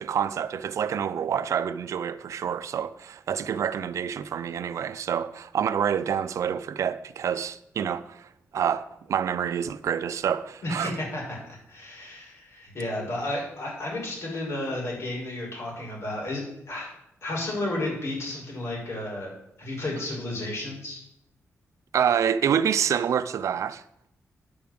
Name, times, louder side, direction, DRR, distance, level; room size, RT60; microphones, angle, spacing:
voice 1, 0.0-10.9 21.9-23.8, right 8 dB, 80° right, 0.6 m, -27 dB
voice 2, 10.6-16.9 17.2-19.3 19.6-21.0, left 1 dB, 60° left, 5.9 m, -32 dB
9.8 x 7.1 x 7.7 m
wide cardioid pair, 120°, 5 cm